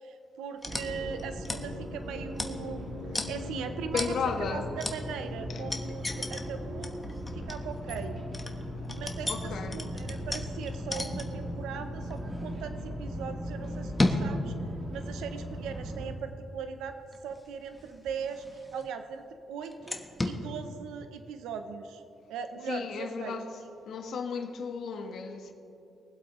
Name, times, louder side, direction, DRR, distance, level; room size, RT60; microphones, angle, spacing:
voice 1, 0.0-7.0 7.3-8.2 8.9-14.5 14.9-16.9 17.2-22.0 22.3-23.4, right 6 dB, 90° right, 0.6 m, -39 dB
sound 1, 0.6-1.7 2.3-2.8 3.1-3.3 4.0-4.2 4.8-5.0 5.7-6.5 6.8-11.5 12.0-12.7 13.5-14.3 15.2-16.1 17.1-19.0 19.6-20.4, left 2 dB, 15° left, 1.2 m, -34 dB
sound 2, 0.6-16.1, equal, 50° right, 2.2 m, -38 dB
voice 2, 3.9-4.7 9.3-9.8 22.7-23.5 23.9-25.5, left 5 dB, 65° left, 1.3 m, -34 dB
22.5 x 7.9 x 3.1 m
cardioid pair, 90°, 0 cm